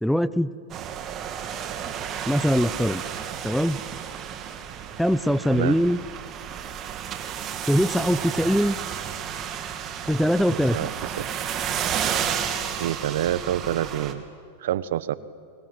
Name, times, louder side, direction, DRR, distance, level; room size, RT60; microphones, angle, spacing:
voice 1, 0.0-0.5 2.3-3.0 3.4-3.8 5.0-6.0 7.7-8.8 10.1-10.9, equal, ahead, 17 dB, 0.7 m, -22 dB
sound 1, 0.7-14.1, right 9 dB, 35° right, 2.7 m, -32 dB
voice 2, 10.5-10.9 12.7-14.2 14.6-15.2, right 11 dB, 75° right, 17 dB, 1.1 m, -27 dB
29.0 x 24.5 x 7.8 m, 2.2 s
hypercardioid pair, 115°, 0 cm